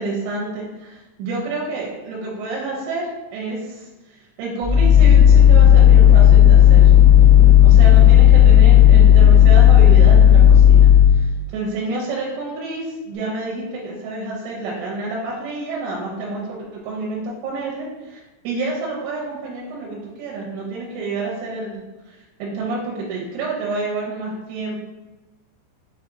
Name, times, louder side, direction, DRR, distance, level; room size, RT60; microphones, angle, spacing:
voice 1, 0.0-3.1 3.3-3.6 4.4-6.9 7.6-10.9 11.5-18.2 18.4-21.7 22.4-24.8, right 3 dB, 80° right, -4 dB, 2.6 m, -28 dB
sound 1, 4.6-11.2, left 10 dB, 85° left, 2.7 m, -9 dB
6.7 x 2.8 x 2.5 m, 1.1 s
omnidirectional pair, 5.0 m